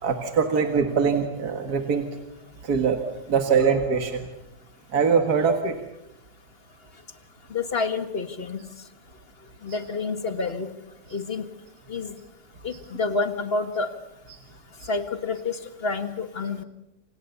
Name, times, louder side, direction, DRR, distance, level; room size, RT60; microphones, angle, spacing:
voice 1, 0.0-2.1 2.6-4.2 4.9-5.8 9.7-9.8 12.7-12.8 14.3-14.4 14.8-14.9, right 5 dB, 70° right, 6 dB, 2.3 m, -23 dB
voice 2, 7.5-8.6 9.6-10.7 11.1-11.5 11.9-12.1 12.6-13.9 14.9-16.6, left 4 dB, 40° left, 10 dB, 1.9 m, -28 dB
28.5 x 27.0 x 7.0 m, 0.89 s
omnidirectional pair, 1.7 m